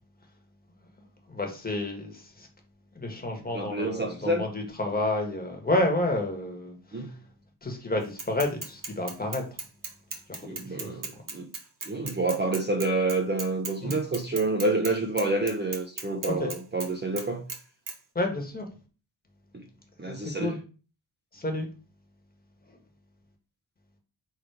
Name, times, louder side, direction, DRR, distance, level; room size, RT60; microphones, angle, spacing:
voice 1, 1.3-2.5 2.9-7.1 7.6-9.4 10.3-11.0 13.8-13.9 16.3-16.5 18.1-18.7 20.1-20.6 21.3-21.7, left 1 dB, 20° left, 1.4 m, -30 dB
voice 2, 3.5-4.4 6.9-7.1 10.4-11.5 11.9-17.5 19.5-19.6 20.0-20.5, right 2 dB, 25° right, 0.7 m, -28 dB
Bicycle / Mechanisms, 8.2-14.9 15.2-16.9 17.2-17.6 17.9-18.0, right 4 dB, 40° right, 1.2 m, -37 dB
6.4 x 3.7 x 4.8 m
wide cardioid pair, 175°, 47 cm